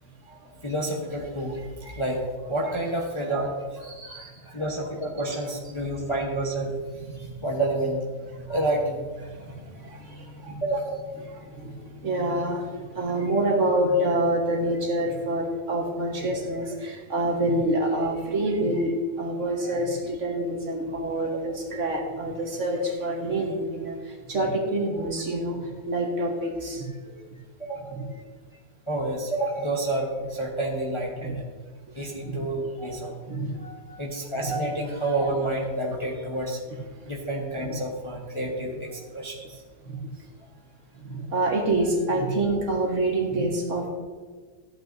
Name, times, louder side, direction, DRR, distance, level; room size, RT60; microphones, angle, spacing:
voice 1, 0.6-1.6 1.9-3.5 4.5-6.7 7.2-8.0 8.5-9.1 10.6-11.0 27.6-27.9 28.9-31.4 31.9-33.1 34.0-36.6 37.0-39.6, right 1 dB, 25° left, -2 dB, 0.9 m, -29 dB
voice 2, 3.9-4.6 7.2-7.5 8.4-8.6 9.3-10.6 11.3-27.0 32.2-32.4 33.3-34.0 34.4-34.5 37.6-37.7 39.8-39.9 41.0-43.9, right 1 dB, 50° right, 1 dB, 1.5 m, -27 dB
14.0 x 8.5 x 2.6 m, 1.5 s
omnidirectional pair, 1.7 m